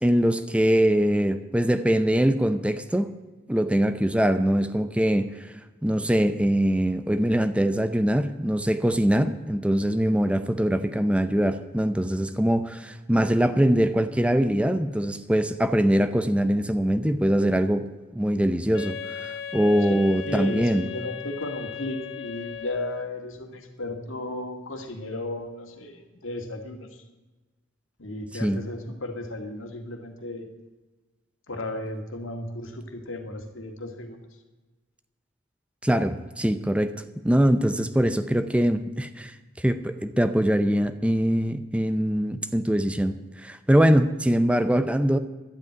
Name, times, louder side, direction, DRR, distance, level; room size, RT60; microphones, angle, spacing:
voice 1, 0.0-3.1 3.5-5.5 5.8-17.9 18.1-20.9 28.4-28.6 35.8-36.9 37.2-45.2, equal, 5° right, 11 dB, 0.5 m, -23 dB
Wind instrument woodwind instrument, 18.7-23.2, left 8 dB, 65° left, 0.8 m, -37 dB
voice 2, 19.8-27.0 28.0-30.5 31.5-34.2, left 1 dB, 90° left, 4 dB, 2.0 m, -35 dB
12.0 x 8.2 x 9.2 m, 1.2 s
head